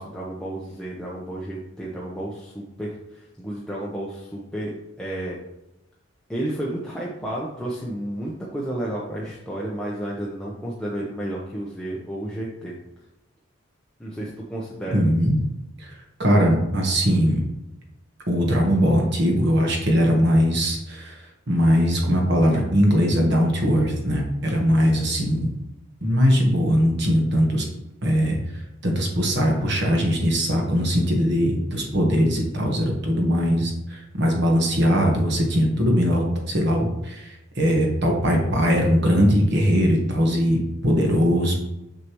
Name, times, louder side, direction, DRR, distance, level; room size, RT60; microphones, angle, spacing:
voice 1, 0.0-5.4 6.3-12.8 14.0-15.1, right 1 dB, 5° left, -5 dB, 0.8 m, -32 dB
voice 2, 14.9-15.4 15.8-15.9 16.2-17.4 18.3-21.2 21.5-25.5 26.0-27.6 28.0-40.6 40.8-41.6, equal, 55° right, 1 dB, 1.3 m, -20 dB
6.7 x 6.5 x 3.0 m, 0.91 s
head